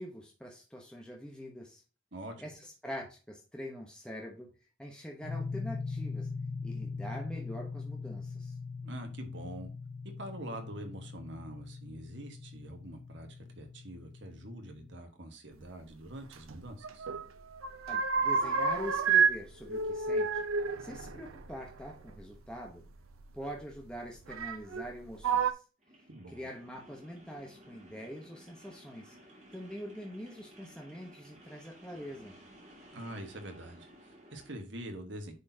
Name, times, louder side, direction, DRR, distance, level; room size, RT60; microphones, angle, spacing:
voice 1, 0.0-1.8 2.4-4.5 4.8-6.3 6.6-8.6 17.9-20.5 20.8-22.8 23.3-25.6 26.3-29.1 29.5-32.4, equal, 5° left, 0.9 m, -44 dB
voice 2, 2.1-2.5 8.8-9.7 10.2-17.1 26.1-26.5 32.9-35.3, right 1 dB, 60° right, 1.5 m, -45 dB
sound 1, 5.2-15.0, left 4 dB, 35° left, 1.7 m, -41 dB
sound 2, 16.3-17.3 17.5-19.4 19.7-22.2 23.2-23.3 24.3-24.9 25.2-25.5, right 5 dB, 90° right, 0.7 m, -29 dB
sound 3, 25.8-34.6, right 1 dB, 30° right, 2.4 m, -56 dB
9.8 x 4.3 x 2.8 m
head